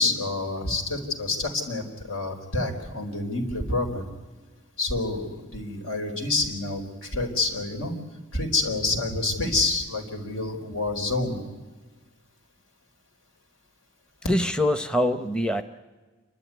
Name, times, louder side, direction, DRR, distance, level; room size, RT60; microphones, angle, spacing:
voice 1, 0.0-4.1 4.8-7.9 8.3-11.4, left 2 dB, 80° left, 3 dB, 4.4 m, -28 dB
voice 2, 14.2-15.6, left 1 dB, 5° left, 9 dB, 0.7 m, -24 dB
28.5 x 12.5 x 9.5 m, 1.3 s
head